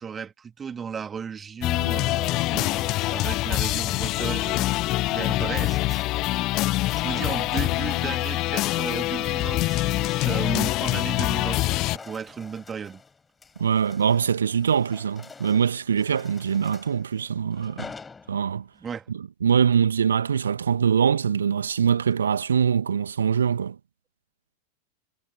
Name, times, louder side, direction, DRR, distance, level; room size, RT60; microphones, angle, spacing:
voice 1, 0.0-4.7 5.1-6.1 6.9-13.0 18.8-19.1, right 6 dB, 20° right, 2.8 m, -35 dB
sound 1, 1.6-12.0, left 19 dB, 40° left, 1.3 m, -25 dB
sound 2, 11.6-18.8, left 4 dB, 15° left, 5.2 m, -48 dB
voice 2, 13.6-17.9 18.3-18.6 19.1-23.8, right 7 dB, 70° right, 2.1 m, -23 dB
figure-of-eight pair, 90°, 0 cm